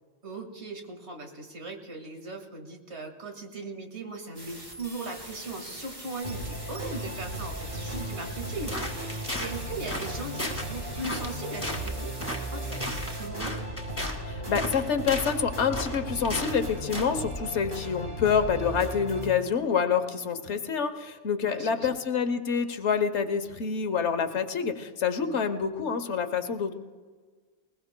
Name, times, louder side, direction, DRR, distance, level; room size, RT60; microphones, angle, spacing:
voice 1, 0.2-13.6 21.4-22.0, right 3 dB, 80° right, 3 dB, 2.2 m, -39 dB
sound 1, 4.3-13.3, right 1 dB, 30° right, 2.5 m, -44 dB
sound 2, 6.2-19.3, right 1 dB, 50° right, 3.5 m, -36 dB
sound 3, 8.7-9.5 9.9-10.1 10.4-10.7 11.0-11.3 11.6-11.9 12.2-12.4 12.7-14.2 14.5-15.4 15.7-16.6 16.9-17.1, left 1 dB, 10° left, 2.0 m, -34 dB
voice 2, 14.3-26.7, left 6 dB, 90° left, 8 dB, 1.2 m, -27 dB
20.5 x 20.5 x 2.2 m, 1.5 s
omnidirectional pair, 1.1 m